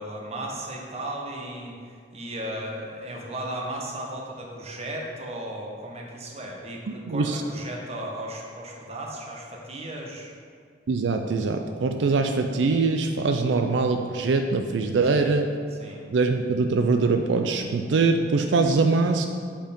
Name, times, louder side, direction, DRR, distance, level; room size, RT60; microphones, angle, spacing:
voice 1, 0.0-10.3 15.1-15.3 15.8-16.0, right 1 dB, 35° right, 0 dB, 1.1 m, -35 dB
voice 2, 7.1-7.4 10.9-15.5 16.1-19.3, right 3 dB, 90° right, 5 dB, 0.4 m, -23 dB
8.0 x 4.5 x 5.2 m, 2.2 s
head